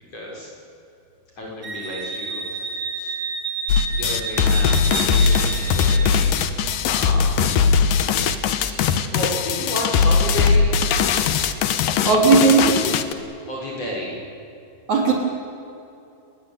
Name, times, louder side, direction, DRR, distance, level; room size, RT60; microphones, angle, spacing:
voice 1, 0.1-0.5 1.4-3.1 3.8-6.6 6.9-7.7 8.5-11.6 13.5-14.3, left 1 dB, 40° left, -3 dB, 7.4 m, -32 dB
Wind instrument woodwind instrument, 1.6-6.2, right 4 dB, 30° right, 4.1 m, -30 dB
sound 1, 3.7-13.1, left 6 dB, 65° left, 2.7 m, -19 dB
voice 2, 12.0-12.8 14.9-15.1, right 5 dB, 45° right, -1 dB, 5.1 m, -16 dB
29.5 x 20.5 x 9.3 m, 2.7 s
omnidirectional pair, 4.6 m